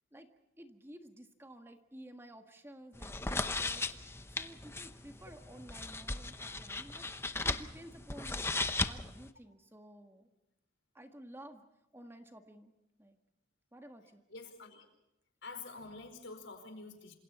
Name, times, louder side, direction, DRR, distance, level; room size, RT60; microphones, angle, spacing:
voice 1, 0.6-3.8 4.4-8.5 8.8-10.3 10.9-11.7 11.9-12.7 13.0-13.2 13.7-14.2, right 1 dB, 15° right, 5 dB, 1.6 m, -53 dB
sound 1, 2.9-9.3, left 3 dB, 15° left, 0.8 m, -37 dB
voice 2, 14.3-14.9 15.4-17.1, left 3 dB, 90° left, 6 dB, 4.7 m, -47 dB
28.0 x 27.0 x 4.3 m, 0.87 s
head